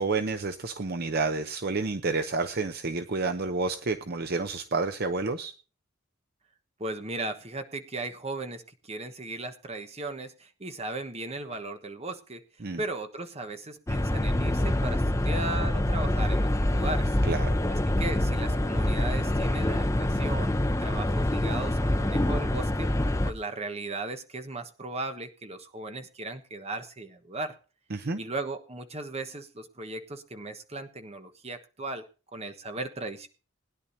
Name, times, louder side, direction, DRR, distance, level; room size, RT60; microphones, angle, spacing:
voice 1, 0.0-5.5 12.6-12.8 17.2-17.5 27.9-28.2, right 3 dB, 50° right, 7 dB, 0.7 m, -29 dB
voice 2, 6.8-12.4 12.8-17.2 17.7-22.9 23.2-27.6 28.2-32.0 32.3-33.3, right 2 dB, 30° right, 7 dB, 1.3 m, -37 dB
sound 1, 13.9-23.3, left 1 dB, 15° left, 0.6 m, -26 dB
20.0 x 10.5 x 2.8 m, 0.34 s
head